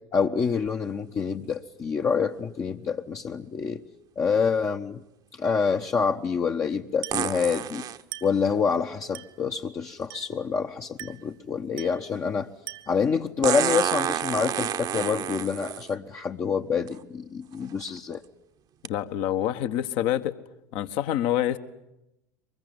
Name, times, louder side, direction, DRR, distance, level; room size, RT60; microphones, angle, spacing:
voice 1, 0.1-3.8 4.2-5.0 5.4-7.9 8.2-12.5 12.9-18.2, left 6 dB, 30° left, 2 dB, 1.0 m, -27 dB
sound 1, 0.7-0.8 7.1-8.0 10.0-10.1 13.4-15.9 16.9-17.0 17.6-17.9 18.8-18.9, right 10 dB, 45° right, 1.1 m, -29 dB
Glass, 7.0-7.4 8.1-8.5 9.1-9.5 10.1-10.4 11.0-11.3 11.8-12.1 12.7-13.1, right 17 dB, 60° right, 1.5 m, -41 dB
voice 2, 18.9-20.4 20.7-21.6, left 12 dB, 60° left, 10 dB, 1.4 m, -26 dB
23.5 x 21.5 x 9.5 m, 0.87 s
hypercardioid pair, 75°, 10 cm